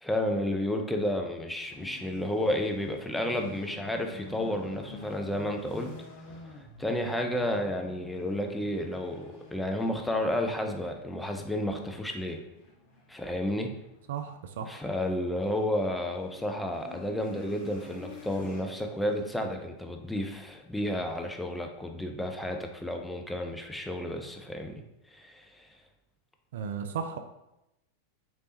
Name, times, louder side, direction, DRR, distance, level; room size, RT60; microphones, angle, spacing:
voice 1, 0.0-5.9 6.6-12.4 13.1-13.7 14.6-24.8 25.1-25.7, left 1 dB, 5° left, 3 dB, 0.5 m, -31 dB
sound 1, 1.7-19.2, left 2 dB, 50° left, 0.8 m, -49 dB
voice 2, 14.1-14.8 26.5-27.2, right 7 dB, 55° right, 8 dB, 0.3 m, -35 dB
4.1 x 3.3 x 2.8 m, 0.88 s
figure-of-eight pair, 90°, 0 cm